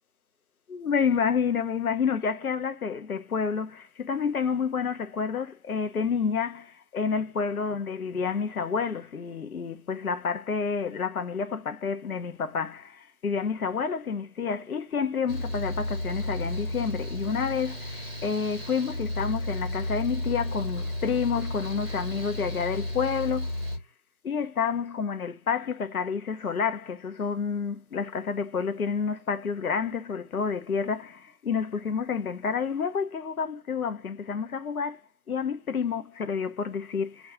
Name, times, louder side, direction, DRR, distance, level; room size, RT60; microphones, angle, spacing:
voice 1, 0.7-23.6 24.2-35.0 35.3-37.3, left 6 dB, 65° left, 0.6 m, -29 dB
Mechanical fan, 15.3-23.8, left 1 dB, 40° right, 0.8 m, -33 dB
2.7 x 2.3 x 3.4 m
figure-of-eight pair, 170°, 47 cm